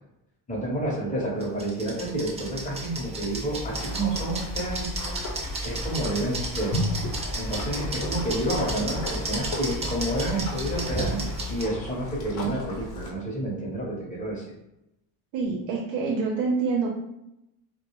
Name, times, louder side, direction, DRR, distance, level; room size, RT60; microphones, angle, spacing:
voice 1, 0.5-5.3 5.6-6.8 7.4-14.4, right 1 dB, 15° left, -4 dB, 0.8 m, -29 dB
sound 1, 1.4-11.6, right 1 dB, 15° right, 0.4 m, -33 dB
sound 2, 3.8-13.1, left 1 dB, 90° left, 0.8 m, -35 dB
voice 2, 15.3-16.9, right 4 dB, 75° right, -2 dB, 0.7 m, -26 dB
2.2 x 2.1 x 2.9 m, 0.87 s
cardioid pair, 125°, 43 cm